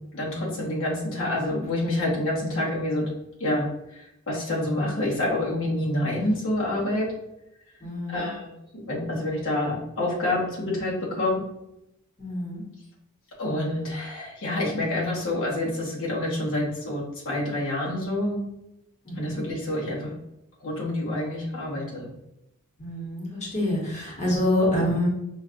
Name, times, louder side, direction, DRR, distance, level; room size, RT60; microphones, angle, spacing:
voice 1, 0.1-3.0 3.4-3.7 3.9-7.1 8.1-8.5 8.9-11.4 13.4-18.4 19.2-20.1 20.6-22.1 24.2-24.4, left 1 dB, 60° left, -4 dB, 1.0 m, -27 dB
voice 2, 7.8-8.3 12.2-12.6 19.1-19.4 22.8-25.1, left 1 dB, 30° left, -4 dB, 1.0 m, -26 dB
5.7 x 2.3 x 2.5 m, 0.86 s
head